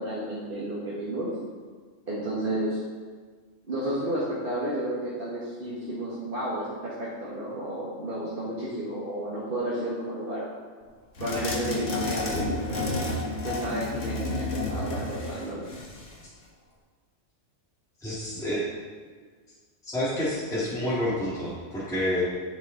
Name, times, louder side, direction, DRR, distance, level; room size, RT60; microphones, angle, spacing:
voice 1, 0.0-1.3 2.1-2.8 3.7-10.4 11.2-13.0 13.4-15.7, right 1 dB, 50° right, -7 dB, 1.6 m, -32 dB
sound 1, 11.2-16.2, left 2 dB, 80° left, 1.8 m, -31 dB
voice 2, 18.0-18.7 19.8-22.2, left 1 dB, 5° left, -9 dB, 1.8 m, -28 dB
10.0 x 7.2 x 3.8 m, 1.5 s
omnidirectional pair, 1.2 m